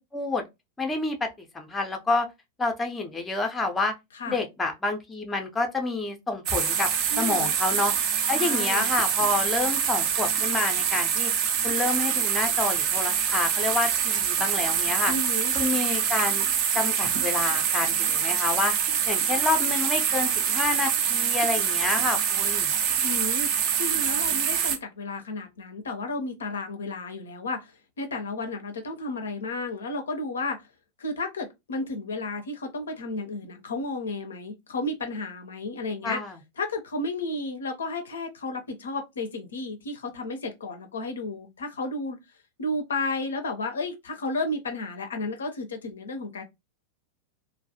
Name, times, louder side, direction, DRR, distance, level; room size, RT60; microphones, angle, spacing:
voice 1, 0.1-0.4 0.8-2.3 2.6-3.9 4.3-7.9 8.3-11.3 11.6-15.1 15.5-16.5 16.7-18.7 19.1-22.7 36.0-36.3, left 3 dB, 10° left, 0.5 m, -28 dB
sound 1, 6.5-24.8, right 8 dB, 40° right, 0.4 m, -25 dB
voice 2, 7.1-7.5 8.3-8.9 15.1-15.5 23.0-30.7 31.0-36.2 36.6-42.2 42.6-46.4, left 2 dB, 65° left, 0.4 m, -32 dB
2.2 x 2.1 x 2.7 m
figure-of-eight pair, 90°, 0 cm